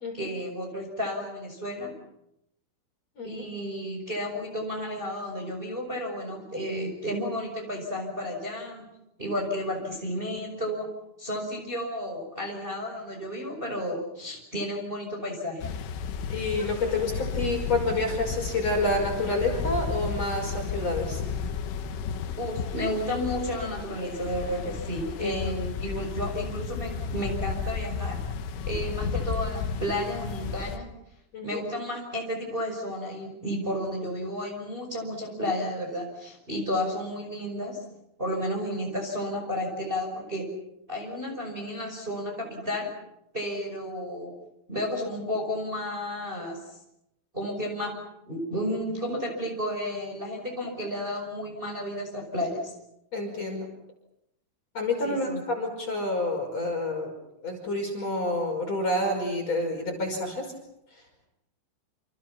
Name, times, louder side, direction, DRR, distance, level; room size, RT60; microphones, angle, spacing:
voice 1, 0.1-1.9 3.2-8.9 9.2-10.9 11.2-15.7 22.4-28.2 28.7-30.9 31.4-37.8 38.2-40.5 40.9-42.9 43.3-44.3 44.7-46.6 47.3-48.0 48.3-52.7 55.0-55.4, equal, 10° right, 1 dB, 5.4 m, -32 dB
sound 1, 15.6-30.8, left 6 dB, 90° left, 4.1 m, -33 dB
voice 2, 16.3-21.2 25.2-25.4 25.9-26.0 31.3-31.6 53.1-53.7 54.7-57.1 57.4-60.5, left 2 dB, 35° left, 2 dB, 6.3 m, -28 dB
28.5 x 28.0 x 5.9 m, 0.83 s
omnidirectional pair, 5.5 m